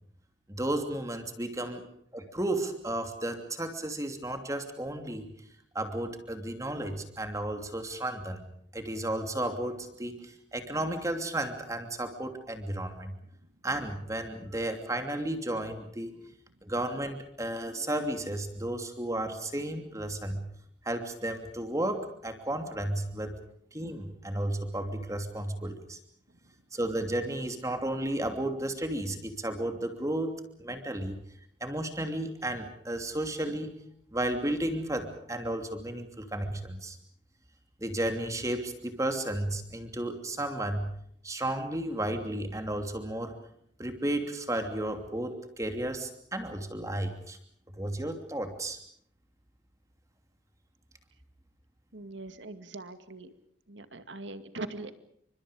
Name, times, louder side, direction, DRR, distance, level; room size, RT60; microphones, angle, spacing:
voice 1, 0.5-1.8 2.1-5.3 5.7-8.4 8.7-13.1 13.6-16.1 16.6-20.5 20.8-23.4 23.7-26.0 26.7-30.3 30.6-31.2 31.6-33.7 34.1-37.0 37.8-40.9 41.2-43.3 43.8-47.4 47.8-48.8, right 1 dB, 15° right, 6 dB, 2.8 m, -33 dB
voice 2, 51.9-53.3 53.7-54.9, right 2 dB, 85° right, 10 dB, 2.1 m, -42 dB
29.0 x 25.0 x 5.1 m, 0.67 s
head